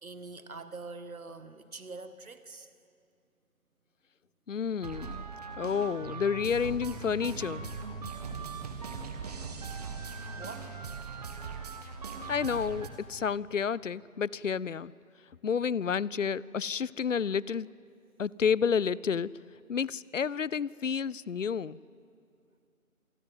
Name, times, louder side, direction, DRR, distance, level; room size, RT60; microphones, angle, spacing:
voice 1, 0.0-2.7 9.8-10.8 17.2-17.3, right 3 dB, 75° right, 10 dB, 2.0 m, -45 dB
voice 2, 4.5-5.3 5.6-7.7 12.3-14.9 15.4-17.7 18.2-19.3 19.7-21.8, left 6 dB, 60° left, 22 dB, 0.6 m, -30 dB
sound 1, 4.8-12.9, right 5 dB, 25° right, 1.6 m, -40 dB
27.0 x 20.5 x 7.9 m, 2.3 s
figure-of-eight pair, 155°, 43 cm